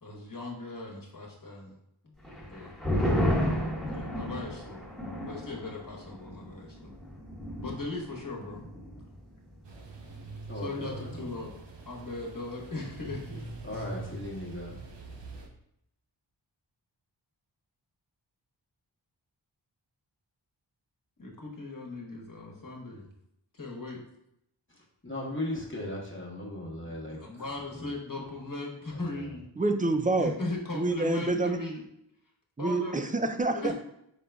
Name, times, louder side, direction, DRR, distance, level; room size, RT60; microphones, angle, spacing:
voice 1, 0.0-1.7 2.5-2.7 3.9-4.8 5.3-6.9 7.6-8.6 10.5-11.5 11.8-13.4 13.7-13.8 21.2-23.1 23.5-24.0 27.0-29.4 30.2-31.8 32.6-33.1 33.5-33.7, left 2 dB, 45° left, -1 dB, 1.3 m, -38 dB
sound 1, 2.2-9.2 9.5-9.6 10.0-10.4, equal, ahead, 1.1 m, -32 dB
sound 2, 9.6-15.5, right 3 dB, 65° right, 0.8 m, -44 dB
voice 2, 10.5-11.5 13.6-14.8 24.7-27.2 27.7-27.9 28.9-29.3, left 1 dB, 25° left, -3 dB, 1.2 m, -38 dB
voice 3, 29.6-30.3 30.7-31.6 32.6-33.7, right 2 dB, 20° right, 7 dB, 0.4 m, -27 dB
5.0 x 3.7 x 2.3 m, 0.77 s
wide cardioid pair, 45°, 46 cm